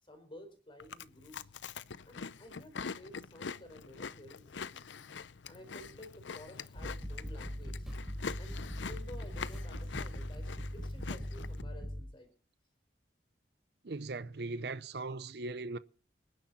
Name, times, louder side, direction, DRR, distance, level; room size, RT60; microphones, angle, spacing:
voice 1, 0.0-1.4 2.0-4.9 5.5-8.0 8.4-12.3, left 1 dB, 25° left, 4.5 m, -53 dB
Chewing mastication, 0.8-11.6, left 5 dB, 85° left, 0.6 m, -44 dB
sound 1, 6.8-12.0, equal, ahead, 3.4 m, -40 dB
voice 2, 13.8-15.8, right 3 dB, 60° right, 0.6 m, -39 dB
25.5 x 10.5 x 4.2 m
head